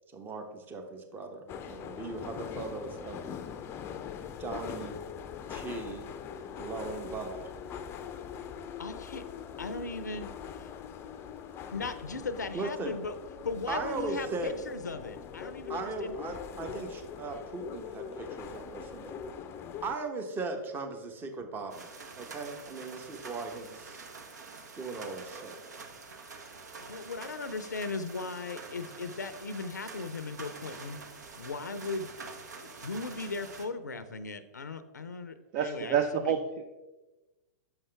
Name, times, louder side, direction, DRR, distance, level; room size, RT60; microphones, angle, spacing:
voice 1, 0.1-3.2 4.4-4.9 5.5-6.1 6.5-7.5 12.5-13.0 13.7-14.6 15.7-19.2 19.8-21.9 22.1-24.0 24.7-25.6, right 3 dB, 20° right, 5 dB, 0.9 m, -38 dB
sound 1, 1.5-20.0, left 7 dB, 25° left, 0.4 m, -42 dB
voice 2, 8.8-9.2 9.6-10.7 11.7-13.1 13.4-16.2 26.8-31.0 31.4-32.1 32.6-36.3, left 3 dB, 90° left, 13 dB, 0.5 m, -38 dB
sound 2, 21.7-33.7, right 4 dB, 75° right, 0.9 m, -46 dB
voice 3, 35.5-36.6, right 7 dB, 45° right, 8 dB, 0.4 m, -28 dB
6.9 x 5.5 x 3.3 m, 1.1 s
hypercardioid pair, 110°, 9 cm